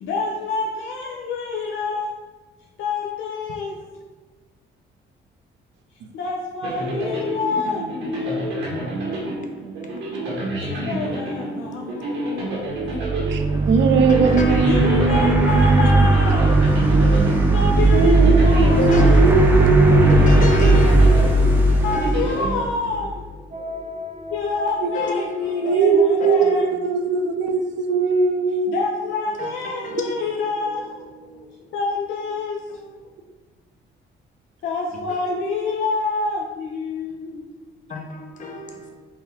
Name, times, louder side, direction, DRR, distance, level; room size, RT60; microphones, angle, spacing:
voice 1, 0.0-2.1 2.8-3.8 6.1-8.9 10.8-12.8 14.6-16.7 17.5-19.3 21.8-23.2 24.3-26.7 28.7-30.9 31.7-32.6 34.6-37.5, left 4 dB, 75° left, 0.5 m, -27 dB
sound 1, 6.6-23.2, right 1 dB, 90° right, 1.4 m, -29 dB
voice 2, 10.7-11.2 11.4-12.1 13.5-15.2 18.4-19.8 20.1-22.9 23.6-23.7 24.9-26.5 29.4-30.0 30.6-31.7 32.7-33.0 34.9-35.2 37.9-38.9, left 1 dB, 40° left, 0.7 m, -32 dB
sound 2, 12.8-23.0, right 2 dB, 10° right, 0.6 m, -17 dB
voice 3, 13.3-16.1 17.9-22.2 24.8-24.9 25.6-28.8 29.9-30.0, right 4 dB, 70° right, 0.5 m, -21 dB
sound 3, 23.5-26.3, left 2 dB, 35° right, 0.9 m, -36 dB
5.5 x 2.3 x 3.4 m
cardioid pair, 90°, 20 cm